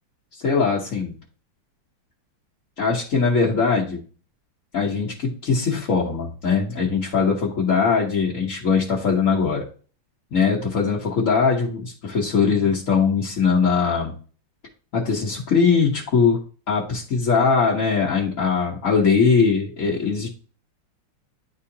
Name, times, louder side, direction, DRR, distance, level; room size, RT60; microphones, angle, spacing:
voice 1, 0.4-1.1 2.8-4.0 4.7-9.6 10.3-14.1 14.9-16.4 16.7-20.3, left 5 dB, 45° left, -5 dB, 1.3 m, -21 dB
10.0 x 3.7 x 2.8 m, 0.38 s
omnidirectional pair, 2.4 m